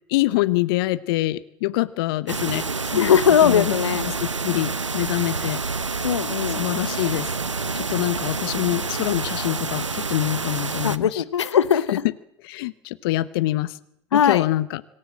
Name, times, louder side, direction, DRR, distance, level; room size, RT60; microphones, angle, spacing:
voice 1, 0.1-2.6 2.9-3.8 4.0-5.6 6.5-7.3 7.7-11.2 12.4-13.8 14.1-14.8, left 17 dB, 50° left, 1.1 m, -25 dB
sound 1, 2.3-11.0, right 4 dB, 85° right, 1.1 m, -28 dB
voice 2, 2.9-4.1 6.0-6.6 10.8-12.0 14.1-14.4, left 8 dB, 70° left, 1.2 m, -19 dB
25.5 x 18.0 x 7.7 m
figure-of-eight pair, 90°, 15 cm